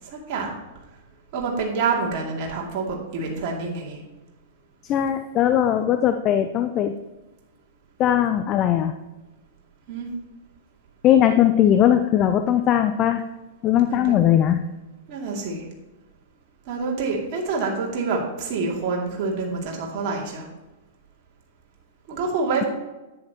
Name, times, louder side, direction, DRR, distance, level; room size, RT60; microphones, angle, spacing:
voice 1, 0.0-0.6 1.3-4.0 9.9-10.1 13.9-14.3 15.1-15.6 16.7-20.5 22.1-22.7, right 4 dB, 45° right, -2 dB, 2.6 m, -27 dB
voice 2, 4.8-6.9 8.0-8.9 11.0-13.2 13.6-14.6, left 10 dB, 35° left, 8 dB, 0.5 m, -19 dB
10.5 x 8.8 x 3.0 m, 1.1 s
figure-of-eight pair, 100°, 0 cm